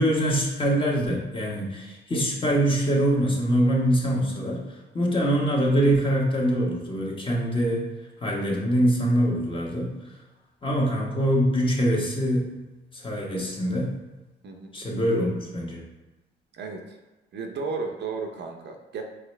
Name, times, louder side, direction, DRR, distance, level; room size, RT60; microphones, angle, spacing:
voice 1, 0.0-4.6 4.9-7.9 8.2-9.9 10.6-12.6 12.9-13.9 14.7-15.8, equal, 25° left, -3 dB, 1.2 m, -24 dB
voice 2, 16.5-17.0 17.3-19.0, right 4 dB, 60° right, 3 dB, 0.6 m, -33 dB
4.8 x 3.0 x 3.3 m, 1.1 s
cardioid pair, 90°, 20 cm